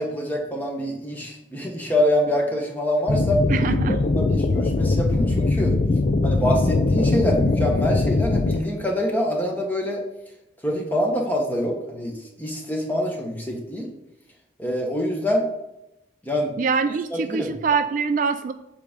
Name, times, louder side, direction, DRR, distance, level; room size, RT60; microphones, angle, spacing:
voice 1, 0.0-3.4 3.9-5.8 6.2-10.0 10.6-13.9 14.6-15.5 16.2-16.5 17.1-17.5, equal, 10° left, 0 dB, 1.2 m, -25 dB
sound 1, 3.1-8.6, left 3 dB, 40° left, 0.4 m, -21 dB
voice 2, 3.5-4.0 16.6-18.5, right 5 dB, 45° right, 9 dB, 0.3 m, -24 dB
8.0 x 3.6 x 5.2 m, 0.89 s
head